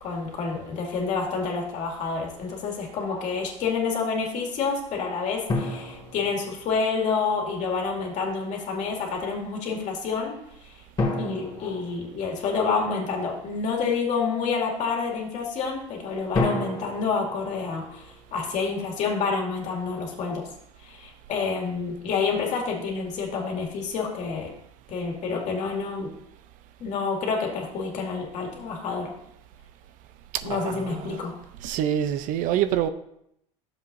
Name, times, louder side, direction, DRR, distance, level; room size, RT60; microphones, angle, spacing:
voice 1, 0.0-10.7 11.2-20.4 20.8-24.5 24.9-26.1 26.8-29.1 30.4-31.3, left 5 dB, 50° left, 0 dB, 2.3 m, -28 dB
sound 1, 5.5-7.1 11.0-12.9 16.3-18.6, left 2 dB, 25° left, 2.4 m, -31 dB
voice 2, 30.3-31.2 31.6-32.9, right 10 dB, 60° right, 12 dB, 0.6 m, -26 dB
12.0 x 7.2 x 2.7 m, 0.76 s
supercardioid pair, 100°, 16 cm